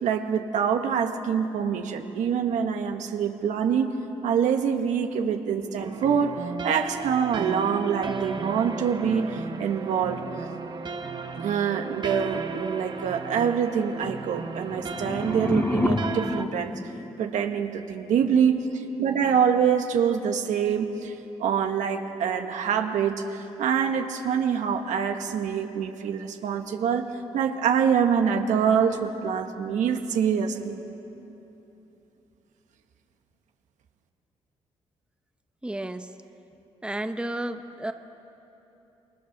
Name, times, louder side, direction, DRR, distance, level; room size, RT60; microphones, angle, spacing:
voice 1, 0.0-3.9 4.2-10.2 11.3-16.7 17.2-21.1 21.4-27.0 27.3-30.8, right 7 dB, 85° right, 5 dB, 1.7 m, -25 dB
sound 1, 5.8-16.5, right 5 dB, 35° right, 1.3 m, -35 dB
sound 2, 14.6-17.7, left 2 dB, 10° left, 0.5 m, -29 dB
voice 2, 35.6-36.1 36.8-37.9, right 1 dB, 10° right, 7 dB, 1.1 m, -32 dB
28.5 x 21.5 x 6.8 m, 3.0 s
cardioid pair, 85°, 12 cm